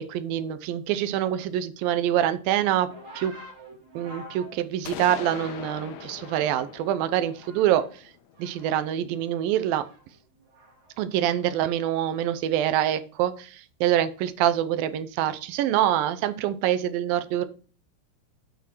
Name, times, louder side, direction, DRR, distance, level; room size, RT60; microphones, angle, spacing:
voice 1, 0.1-2.9 3.2-3.3 4.0-7.8 8.4-9.8 11.0-17.5, right 11 dB, 75° right, 12 dB, 2.3 m, -25 dB
sound 1, 2.9-6.8 7.1-8.0 8.3-11.0 11.8-12.2, right 1 dB, 45° right, 3.8 m, -48 dB
sound 2, 4.9-8.7, left 10 dB, 80° left, 2.6 m, -41 dB
10.5 x 6.3 x 4.6 m, 0.38 s
omnidirectional pair, 4.8 m